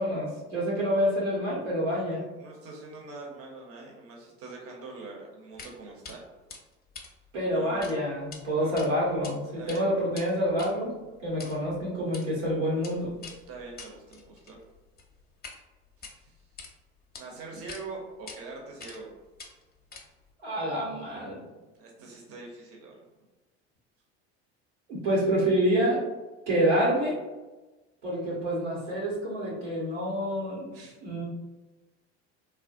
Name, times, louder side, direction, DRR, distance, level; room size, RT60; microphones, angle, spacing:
voice 1, 0.0-2.2 7.3-13.1 20.4-21.5 24.9-26.0 26.5-27.2 28.0-30.7 31.0-31.2, equal, 90° right, -5 dB, 1.4 m, -27 dB
voice 2, 2.4-6.2 7.5-7.9 8.6-8.7 9.6-9.9 13.5-14.6 16.0-16.4 17.2-19.1 21.7-23.0 30.7-31.0, right 3 dB, 40° right, -1 dB, 0.8 m, -43 dB
sound 1, 5.6-5.7 6.0-6.2 6.5-7.9 8.2-8.4 8.8-9.3 9.6-15.6 15.9-16.7 17.1-17.2 17.7-17.8 18.3-18.4 18.8-19.1 19.4-20.3, left 4 dB, 30° left, 0.6 m, -46 dB
3.3 x 2.2 x 2.6 m, 1.1 s
hypercardioid pair, 75°, 35 cm